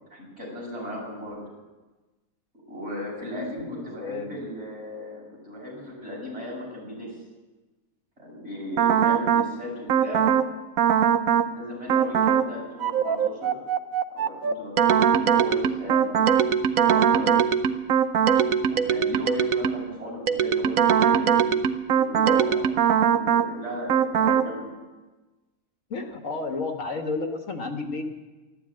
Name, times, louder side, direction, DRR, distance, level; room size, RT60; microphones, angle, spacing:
voice 1, 0.1-1.4 2.7-7.2 8.2-10.3 11.4-13.6 14.1-16.3 16.8-17.3 18.7-21.5 21.9-22.7 23.0-24.6, equal, 50° right, -4 dB, 6.6 m, -36 dB
voice 2, 3.3-4.3 25.9-28.0, left 3 dB, 65° left, 5 dB, 1.7 m, -32 dB
sound 1, 8.8-9.5 9.9-10.5 10.8-11.5 11.9-12.5 12.8-19.9 20.3-23.5 23.9-24.5, right 8 dB, 80° right, 1.2 m, -21 dB
13.0 x 12.5 x 8.8 m, 1.2 s
omnidirectional pair, 1.4 m